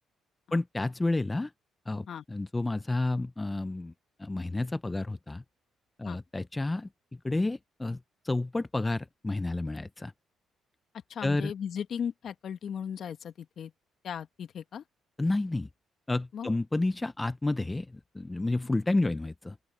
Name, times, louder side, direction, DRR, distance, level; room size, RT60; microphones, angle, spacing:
voice 1, 0.5-1.5 1.9-3.9 4.2-5.4 6.0-6.9 7.2-8.0 8.2-10.1 11.2-11.5 15.2-15.7 16.1-19.6, left 2 dB, 15° left, 0.7 m, -30 dB
voice 2, 11.1-13.7 14.0-14.8 16.3-16.5, left 8 dB, 60° left, 1.6 m, -37 dB
open air
cardioid pair, 90°, 0 cm